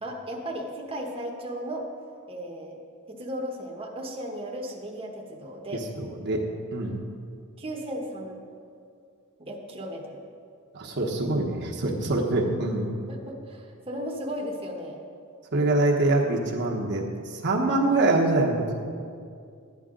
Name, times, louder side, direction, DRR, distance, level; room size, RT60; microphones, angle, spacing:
voice 1, 0.0-1.9 2.3-2.8 3.1-5.8 7.6-8.4 9.4-10.2 13.1-15.0, equal, 25° right, -1 dB, 1.1 m, -35 dB
voice 2, 6.0-6.4 6.7-7.0 10.7-12.9 15.5-18.7, right 2 dB, 55° right, -1 dB, 1.1 m, -24 dB
13.5 x 9.6 x 3.8 m, 2.3 s
head